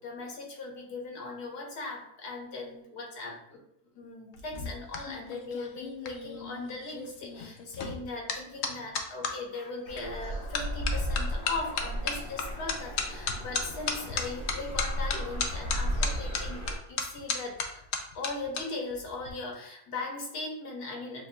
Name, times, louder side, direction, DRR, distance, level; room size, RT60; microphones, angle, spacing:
voice 1, 0.0-3.6 3.9-17.8 18.1-21.3, left 3 dB, 90° left, 0 dB, 1.5 m, -39 dB
sound 1, 4.3-9.3 10.0-10.2 10.5-18.6 18.9-19.3, left 5 dB, 65° left, 0.8 m, -34 dB
sound 2, 9.9-16.8, equal, 25° left, 0.8 m, -34 dB
6.9 x 2.4 x 2.2 m, 0.80 s
omnidirectional pair, 1.6 m